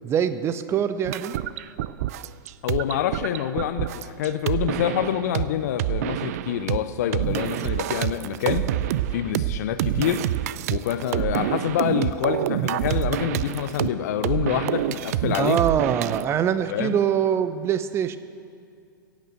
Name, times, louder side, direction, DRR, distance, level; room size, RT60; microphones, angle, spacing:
voice 1, 0.0-1.3 15.4-18.2, right 9 dB, 25° right, 12 dB, 0.8 m, -23 dB
sound 1, 1.0-5.4 5.8-6.8 7.1-16.2, right 13 dB, 50° right, 0.5 m, -27 dB
voice 2, 2.6-8.7 9.1-10.2 10.7-15.6 16.7-17.0, left 10 dB, 50° left, 11 dB, 0.7 m, -26 dB
16.0 x 8.5 x 7.9 m, 2.4 s
figure-of-eight pair, 100°, 11 cm